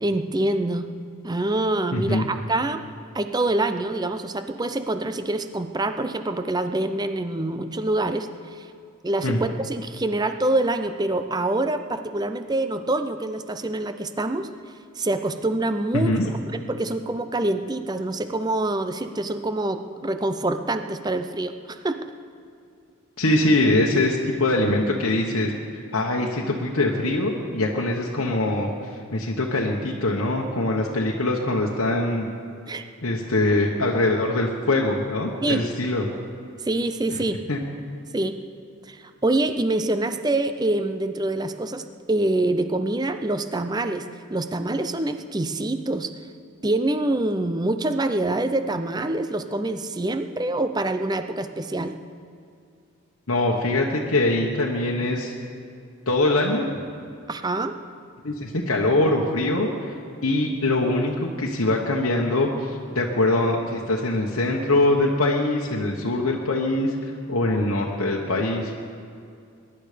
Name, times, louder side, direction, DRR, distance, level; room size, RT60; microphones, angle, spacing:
voice 1, 0.0-0.9 1.2-2.8 3.1-8.7 9.0-14.5 15.0-22.0 32.7-32.9 35.4-35.6 36.6-37.4 38.1-38.4 38.8-44.0 44.3-46.1 46.6-52.0 57.3-57.7, right 2 dB, 20° right, 9 dB, 0.5 m, -25 dB
voice 2, 1.9-2.3 9.2-9.4 15.9-16.3 23.2-25.5 25.9-32.3 33.0-36.1 37.1-37.2 37.5-37.6 53.3-55.3 56.1-56.7 58.2-59.9 60.2-68.7, left 2 dB, 75° left, -1 dB, 1.2 m, -23 dB
22.0 x 11.0 x 5.1 m, 2.4 s
head